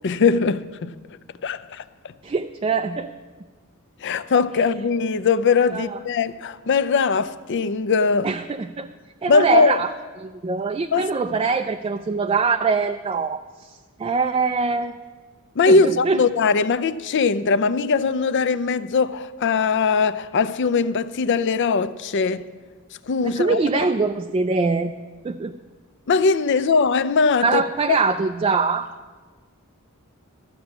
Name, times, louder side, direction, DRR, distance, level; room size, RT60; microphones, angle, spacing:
voice 1, 0.0-0.9 1.4-1.8 4.0-8.3 9.3-9.8 10.9-11.1 15.6-22.5 23.1-23.6 26.1-27.6 27.9-28.0, left 4 dB, 55° left, 0.5 m, -20 dB
voice 2, 2.2-3.1 5.7-6.0 8.2-8.9 9.2-9.9 10.2-13.7 14.0-14.9 15.7-16.2 23.2-24.9 25.2-25.5 27.4-28.9, right 4 dB, 25° right, 0.3 m, -23 dB
13.0 x 6.0 x 8.5 m
head